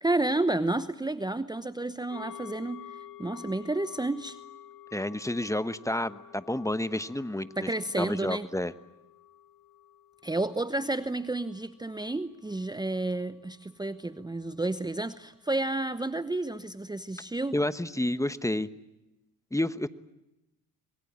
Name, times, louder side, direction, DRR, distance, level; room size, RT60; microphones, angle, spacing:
voice 1, 0.0-4.4 7.6-8.5 10.2-17.6, right 2 dB, 10° right, 13 dB, 0.9 m, -31 dB
sound 1, 2.1-13.8 14.1-14.2, left 11 dB, 50° left, 2.8 m, -51 dB
voice 2, 4.9-7.7 8.0-8.7 17.5-18.7 19.5-19.9, left 1 dB, 5° left, 13 dB, 1.1 m, -30 dB
25.5 x 22.5 x 8.7 m, 0.95 s
hypercardioid pair, 55°, 42 cm